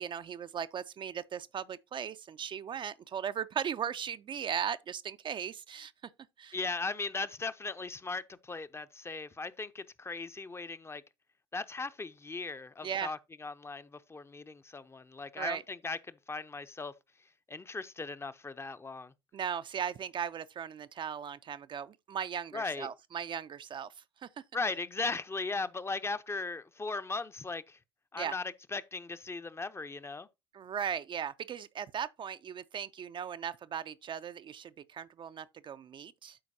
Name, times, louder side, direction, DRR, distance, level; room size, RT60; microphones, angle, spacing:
voice 1, 0.0-5.9 6.4-6.6 12.8-13.1 15.4-15.6 19.3-24.3 28.2-28.3 30.5-36.4, right 8 dB, 35° right, 0.4 m, -37 dB
voice 2, 6.5-11.0 11.5-16.9 17.5-19.1 22.5-22.9 24.5-27.8 28.1-28.4 28.7-30.3, left 3 dB, 20° left, 0.6 m, -38 dB
12.5 x 4.4 x 2.7 m
figure-of-eight pair, 60°, 14 cm